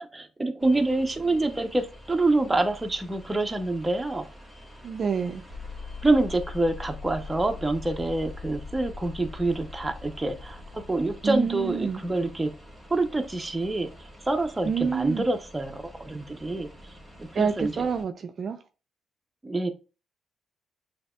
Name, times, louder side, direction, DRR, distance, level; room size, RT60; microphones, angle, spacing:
voice 1, 0.1-4.3 6.0-12.5 12.9-13.9 14.2-16.7 17.2-17.9 19.4-19.7, right 2 dB, 15° right, 0.7 m, -26 dB
sound 1, 0.6-18.0, equal, 5° left, 1.4 m, -48 dB
voice 2, 4.8-5.4 11.2-12.0 14.6-15.2 17.3-18.6, right 6 dB, 55° right, 0.4 m, -27 dB
sound 2, 5.5-11.6, left 5 dB, 90° left, 0.8 m, -41 dB
6.4 x 2.8 x 2.3 m
cardioid pair, 75°, 0 cm